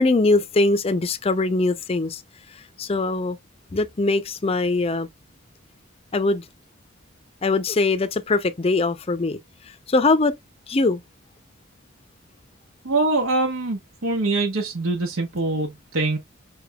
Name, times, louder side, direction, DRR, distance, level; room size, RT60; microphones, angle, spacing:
voice 1, 0.0-2.2 2.8-3.4 3.7-5.1 6.1-6.4 7.4-9.4 9.9-10.4 10.7-11.0, left 3 dB, 30° left, 0.5 m, -21 dB
voice 2, 12.8-16.2, right 2 dB, 80° right, 1.1 m, -24 dB
5.4 x 3.4 x 2.3 m
head